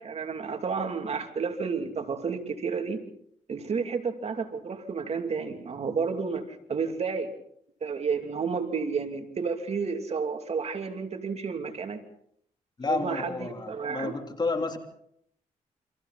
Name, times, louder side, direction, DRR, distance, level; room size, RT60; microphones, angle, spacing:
voice 1, 0.0-3.0 3.5-7.3 7.8-12.0 12.9-14.2, right 5 dB, 50° right, 5 dB, 2.8 m, -31 dB
voice 2, 12.8-14.8, left 3 dB, 30° left, 4 dB, 3.5 m, -30 dB
29.5 x 26.5 x 4.2 m, 0.69 s
cardioid pair, 85°, 13 cm